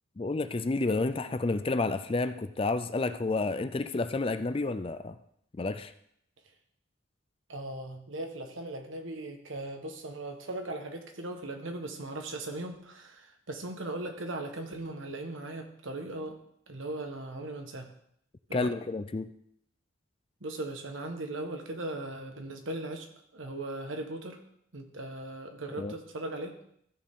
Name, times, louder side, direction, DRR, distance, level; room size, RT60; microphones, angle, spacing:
voice 1, 0.2-5.2 5.6-5.9 18.5-19.3 25.7-25.9, left 3 dB, 30° left, 11 dB, 0.4 m, -30 dB
voice 2, 7.5-16.4 16.7-17.9 18.5-18.7 20.4-23.1 23.3-24.4 24.7-26.5, right 2 dB, 80° right, 5 dB, 1.4 m, -38 dB
14.0 x 6.8 x 3.7 m, 0.71 s
head